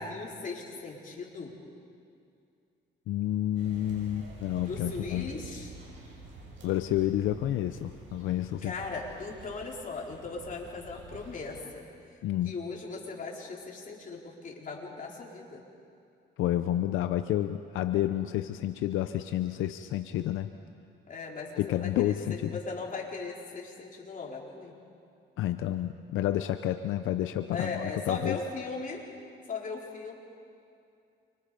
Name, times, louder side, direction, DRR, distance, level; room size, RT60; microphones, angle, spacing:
voice 1, 0.0-1.5 4.6-5.7 8.6-11.8 12.4-15.6 21.1-24.8 27.5-29.0 29.5-30.1, left 4 dB, 40° left, -2 dB, 4.5 m, -38 dB
voice 2, 3.1-5.3 6.6-8.7 12.2-12.5 16.4-20.5 21.6-22.6 25.4-28.4, left 12 dB, 85° left, 9 dB, 0.7 m, -30 dB
sound 1, 3.5-11.6, right 3 dB, 80° right, 6.3 m, -48 dB
29.5 x 25.0 x 5.2 m, 2.5 s
cardioid pair, 90°, 20 cm